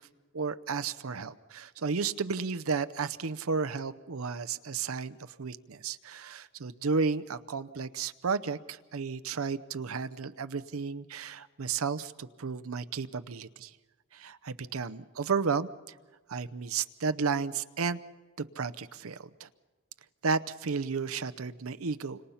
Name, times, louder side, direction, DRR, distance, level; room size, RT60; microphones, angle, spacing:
voice 1, 0.3-13.7 14.1-15.7 16.3-18.0 18.4-19.5 20.2-22.2, right 5 dB, 90° right, 14 dB, 0.7 m, -33 dB
30.0 x 26.0 x 5.7 m, 1.3 s
head